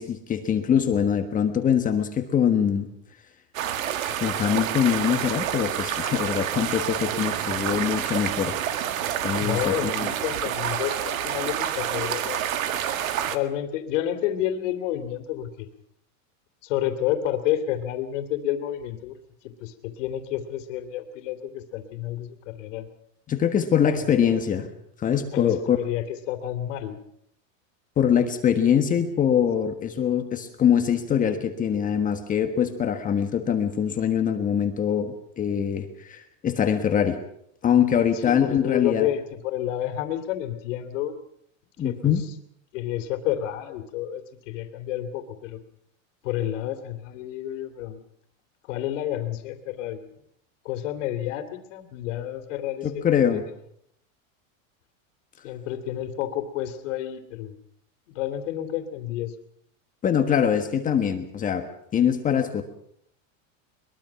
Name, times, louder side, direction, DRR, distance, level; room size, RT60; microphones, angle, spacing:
voice 1, 0.0-2.9 4.2-8.6 9.2-10.1 23.3-24.7 25.0-25.8 28.0-37.2 37.6-39.1 41.8-42.2 52.8-53.4 60.0-61.7 61.9-62.6, left 8 dB, 20° left, 6 dB, 1.4 m, -23 dB
sound 1, 3.5-13.4, right 10 dB, 90° right, 1.9 m, -28 dB
voice 2, 9.4-12.6 13.2-15.7 16.6-19.2 19.4-22.9 24.0-24.4 25.3-27.0 38.1-41.2 41.8-42.3 42.7-45.6 46.2-48.0 48.7-50.0 50.6-53.4 55.4-57.5 58.1-59.3, left 12 dB, 65° left, 7 dB, 3.0 m, -30 dB
22.5 x 22.0 x 5.9 m, 0.71 s
supercardioid pair, 155°, 39 cm